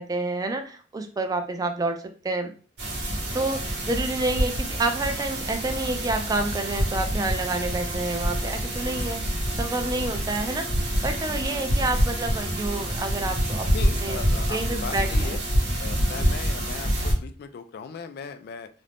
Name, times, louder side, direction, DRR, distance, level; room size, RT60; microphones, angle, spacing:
voice 1, 0.0-2.5 3.3-13.7 14.0-14.2 14.5-15.4 16.2-16.3, right 2 dB, 20° right, 6 dB, 0.3 m, -29 dB
sound 1, 2.8-17.1, equal, 70° right, 0.9 m, -27 dB
voice 2, 13.7-15.4 15.8-18.7, left 6 dB, 60° left, 10 dB, 0.3 m, -38 dB
2.5 x 2.0 x 3.2 m, 0.39 s
head